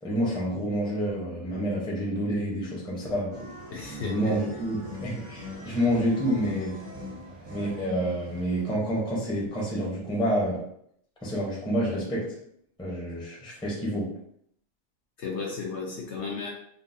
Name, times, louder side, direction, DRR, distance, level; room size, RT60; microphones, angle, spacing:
voice 1, 0.0-3.4 4.0-6.8 7.5-10.6 11.2-12.4 12.8-14.1, equal, 5° left, -5 dB, 0.6 m, -28 dB
sound 1, 3.3-8.7, left 1 dB, 70° right, 1.3 m, -41 dB
voice 2, 3.7-4.4 15.2-16.5, left 5 dB, 65° left, -2 dB, 0.9 m, -34 dB
3.7 x 2.1 x 2.6 m, 0.70 s
omnidirectional pair, 1.4 m